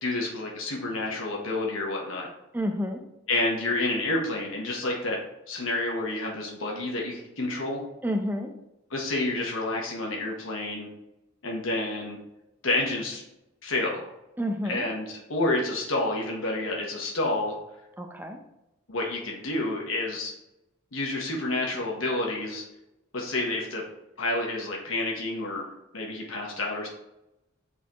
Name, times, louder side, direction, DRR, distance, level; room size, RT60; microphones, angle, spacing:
voice 1, 0.0-2.3 3.3-5.2 5.5-7.8 8.9-10.9 11.4-12.2 12.6-13.2 13.6-14.1 14.7-17.6 18.9-20.3 20.9-22.6 23.1-23.8 24.2-26.9, left 2 dB, 85° left, -1 dB, 1.2 m, -29 dB
voice 2, 2.5-3.0 8.0-8.5 14.4-14.9 18.0-18.4, equal, 10° right, 4 dB, 0.6 m, -29 dB
8.2 x 4.1 x 3.0 m, 0.89 s
head